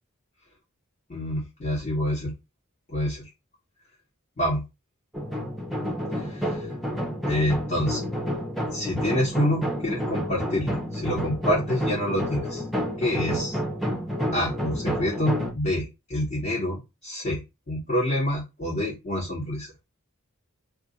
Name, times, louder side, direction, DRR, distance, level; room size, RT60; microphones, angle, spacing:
voice 1, 1.1-2.3 2.9-3.3 4.4-4.6 6.1-6.7 7.3-8.0 8.7-12.6 13.0-13.6 14.3-19.7, left 1 dB, 40° left, -4 dB, 1.1 m, -27 dB
sound 1, 5.1-15.5, equal, ahead, 0.6 m, -29 dB
2.4 x 2.4 x 3.9 m, 0.24 s
head